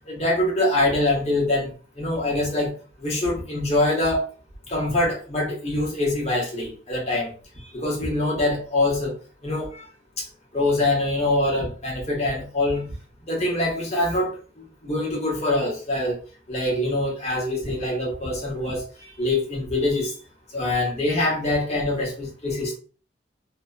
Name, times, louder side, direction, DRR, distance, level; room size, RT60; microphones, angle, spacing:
voice 1, 0.1-2.7 3.0-4.3 4.7-9.1 9.4-9.8 10.2-10.3 10.5-12.9 13.3-16.2 16.5-18.8 19.2-20.1 20.5-22.8, left 2 dB, 35° left, 1.0 m, -24 dB
2.7 x 2.1 x 2.3 m
head